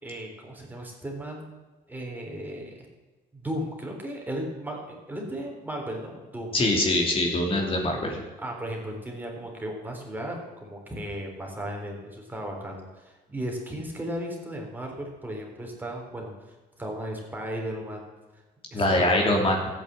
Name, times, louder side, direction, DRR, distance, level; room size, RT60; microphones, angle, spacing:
voice 1, 0.0-1.4 1.9-2.9 3.3-4.8 5.1-6.6 8.4-18.1 18.3-18.4 18.7-19.4, right 1 dB, 10° right, 0 dB, 3.7 m, -35 dB
voice 2, 6.5-8.2 18.7-19.6, left 1 dB, 30° left, 1 dB, 2.8 m, -23 dB
14.0 x 9.0 x 7.6 m, 1.2 s
cardioid pair, 110°, 17 cm